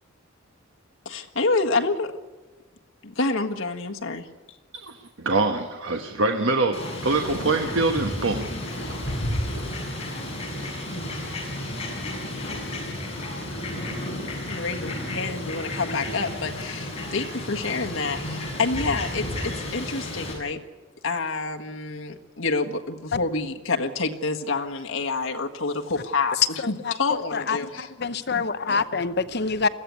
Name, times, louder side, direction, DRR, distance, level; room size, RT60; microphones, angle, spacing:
voice 1, 1.0-2.1 3.0-4.3 14.5-20.6 21.0-26.4 26.7-27.9, left 3 dB, 75° left, 1.7 m, -28 dB
voice 2, 4.7-8.5, right 3 dB, 65° right, 1.3 m, -24 dB
Fowl, 6.7-20.3, left 1 dB, 30° left, 7.1 m, -32 dB
voice 3, 26.6-26.9 27.3-29.7, left 4 dB, 55° left, 0.9 m, -26 dB
21.5 x 15.0 x 9.6 m
head